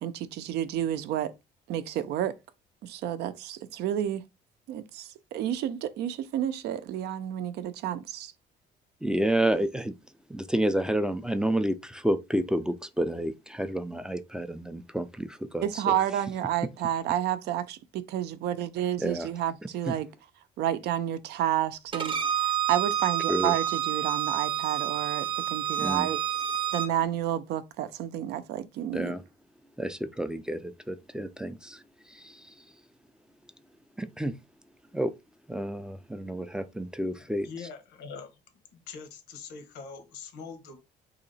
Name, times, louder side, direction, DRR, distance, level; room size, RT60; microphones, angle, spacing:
voice 1, 0.0-1.3 1.7-2.4 2.8-4.2 4.7-8.3 15.6-20.1 20.6-26.2 26.7-29.1, right 11 dB, 75° right, 0.5 m, -30 dB
voice 2, 9.0-9.9 10.3-15.6 19.0-19.3 19.9-20.0 23.3-23.5 25.8-26.1 28.9-29.2 29.8-31.8 32.1-32.5 34.0-34.3 34.9-35.1 35.5-37.5, right 1 dB, 5° right, 0.3 m, -29 dB
Bowed string instrument, 21.9-26.9, right 9 dB, 30° right, 0.7 m, -29 dB
voice 3, 37.2-38.4 38.7-40.8, left 5 dB, 90° left, 1.0 m, -43 dB
2.9 x 2.8 x 4.0 m
cardioid pair, 110°, 17 cm